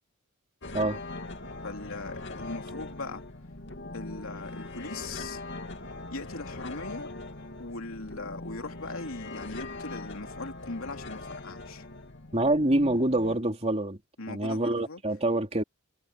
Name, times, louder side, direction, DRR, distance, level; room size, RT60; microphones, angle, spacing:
sound 1, 0.6-13.4, left 2 dB, 60° left, 2.5 m, -41 dB
voice 1, 1.6-3.2 3.9-5.4 6.1-7.1 7.6-11.8 14.2-15.0, left 3 dB, 85° left, 3.0 m, -39 dB
voice 2, 12.3-14.0 14.3-15.6, right 1 dB, 30° right, 3.2 m, -26 dB
head